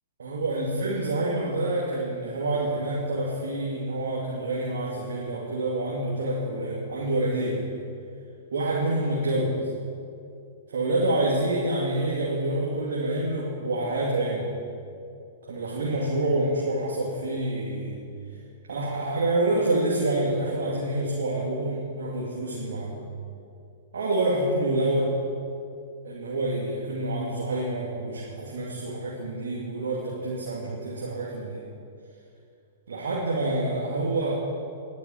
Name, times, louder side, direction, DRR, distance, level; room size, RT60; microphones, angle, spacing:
voice 1, 0.2-7.6 8.5-9.6 10.7-14.5 15.5-18.0 18.7-23.0 23.9-25.1 26.0-31.6 32.9-34.3, right 2 dB, 65° right, -4 dB, 2.3 m, -27 dB
20.0 x 10.5 x 4.5 m, 2.5 s
figure-of-eight pair, 105°, 0 cm